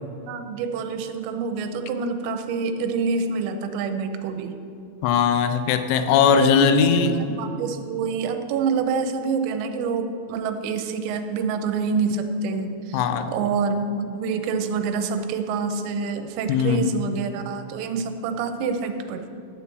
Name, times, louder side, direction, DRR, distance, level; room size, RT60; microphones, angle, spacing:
voice 1, 0.3-4.6 6.4-13.0 13.3-19.3, right 5 dB, 90° right, 7 dB, 3.4 m, -27 dB
voice 2, 5.0-7.1 12.9-13.3 16.5-16.9, left 7 dB, 90° left, 8 dB, 3.5 m, -19 dB
12.5 x 4.6 x 8.4 m, 2.8 s
omnidirectional pair, 6.0 m